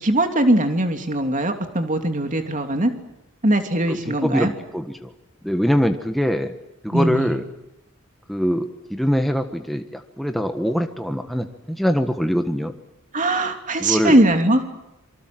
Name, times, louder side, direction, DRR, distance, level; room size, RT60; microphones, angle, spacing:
voice 1, 0.0-2.9 3.4-4.5 6.9-7.3 13.1-14.6, right 1 dB, 35° right, 6 dB, 3.0 m, -20 dB
voice 2, 3.9-5.1 5.4-6.5 6.8-7.4 8.3-12.7 13.8-14.2, equal, ahead, 5 dB, 1.4 m, -23 dB
27.0 x 25.0 x 7.8 m, 0.89 s
head